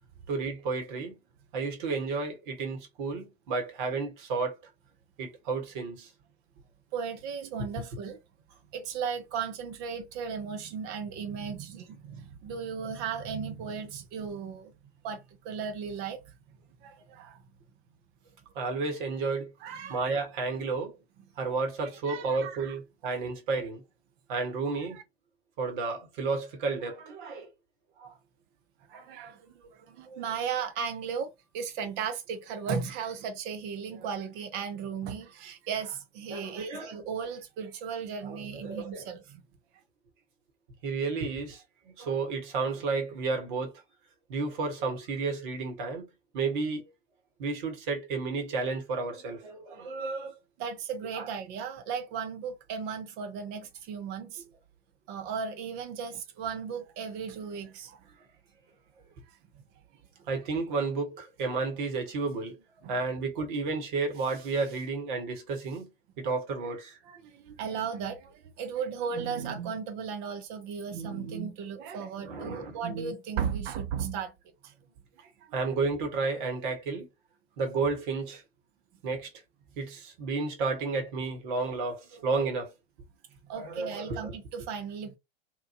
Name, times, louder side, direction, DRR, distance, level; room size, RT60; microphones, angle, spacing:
voice 1, 0.3-1.1 1.5-4.5 5.2-6.1 18.5-19.5 19.9-20.9 21.4-23.8 24.3-25.0 25.6-27.5 28.0-28.1 28.9-29.1 30.1-30.3 36.3-37.0 38.2-39.1 40.8-43.7 44.3-46.1 46.3-46.8 47.4-50.4 51.1-51.3 60.3-62.6 62.9-65.9 66.2-67.0 72.2-72.8 75.5-77.1 77.6-78.4 79.0-79.3 79.8-82.7 83.5-84.3, right 4 dB, 50° right, 1.1 m, -32 dB
voice 2, 6.9-8.2 8.7-14.7 15.0-16.3 16.8-17.4 19.6-20.0 22.1-22.8 28.9-39.4 50.6-54.4 55.1-58.0 59.3-59.6 62.8-63.0 67.0-74.3 74.6-74.7 75.2-75.6 83.4-85.2, right 6 dB, 30° right, 0.5 m, -36 dB
2.9 x 2.1 x 2.5 m
figure-of-eight pair, 90°, 31 cm